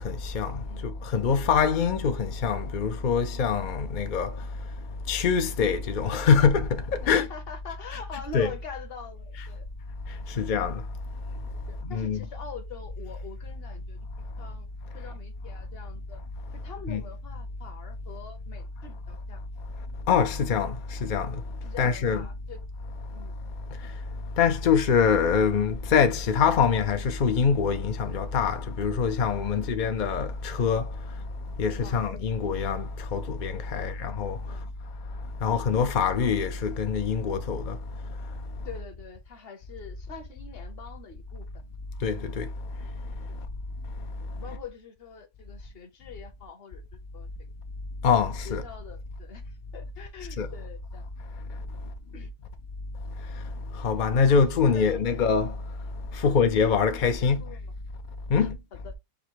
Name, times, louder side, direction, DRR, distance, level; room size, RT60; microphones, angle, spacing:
voice 1, 0.0-4.3 5.1-7.3 8.3-8.5 10.4-10.8 11.9-12.3 16.9-17.0 20.1-21.4 21.8-22.3 24.4-30.9 31.6-34.4 35.4-37.8 42.0-42.5 48.0-48.6 50.4-50.5 53.8-55.5 56.1-57.4 58.3-58.6, left 6 dB, 70° left, 0.4 m, -24 dB
voice 2, 7.0-9.7 10.3-10.5 11.9-14.1 14.4-14.7 14.9-16.2 16.6-19.4 21.6-22.6 23.1-23.3 29.5-29.8 30.6-30.7 31.8-32.1 33.7-33.8 34.5-34.7 38.6-41.5 44.4-46.8 47.1-47.3 48.4-51.0 52.1-52.3 54.3-55.2 56.2-56.4 56.7-57.7 58.4-58.5 58.8-58.9, left 5 dB, 45° left, 1.0 m, -44 dB
5.1 x 2.1 x 4.5 m
omnidirectional pair, 1.6 m